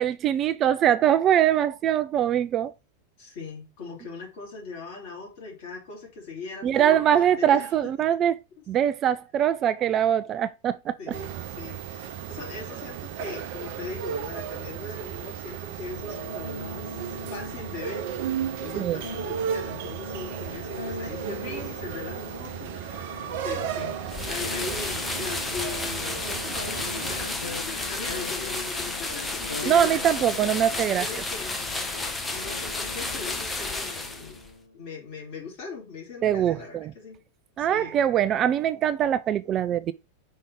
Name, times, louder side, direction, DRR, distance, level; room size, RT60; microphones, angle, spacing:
voice 1, 0.0-2.7 6.6-8.3 8.7-11.0 18.8-19.0 29.7-31.0 36.2-36.9 37.6-39.9, right 10 dB, 30° right, 0.3 m, -23 dB
voice 2, 3.2-7.9 8.6-8.7 11.0-18.1 18.6-30.5 30.9-31.6 32.3-34.4 34.7-37.2 37.6-38.0, left 4 dB, 45° left, 3.2 m, -40 dB
sound 1, 11.1-27.3, right 9 dB, 50° right, 0.8 m, -35 dB
sound 2, 15.8-34.8, left 3 dB, 75° left, 0.6 m, -41 dB
sound 3, 24.1-34.5, left 2 dB, 10° left, 0.8 m, -32 dB
5.4 x 3.5 x 5.1 m
figure-of-eight pair, 90°, 0 cm